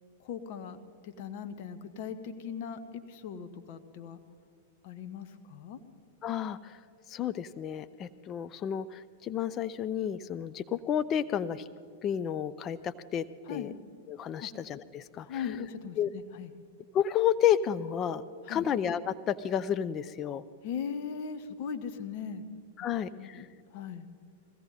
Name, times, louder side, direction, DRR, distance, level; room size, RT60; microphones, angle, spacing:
voice 1, 0.2-4.2 4.8-5.8 13.4-13.7 14.4-14.5 15.2-16.5 18.4-18.7 20.6-22.4 23.1-24.1, left 7 dB, 55° left, 10 dB, 1.2 m, -39 dB
voice 2, 6.2-6.8 7.1-11.6 12.0-13.7 14.1-15.4 16.0-16.1 16.9-20.4 22.8-23.4, left 9 dB, 30° left, 14 dB, 0.5 m, -31 dB
21.0 x 16.0 x 4.1 m, 2.1 s
hypercardioid pair, 105°, 0 cm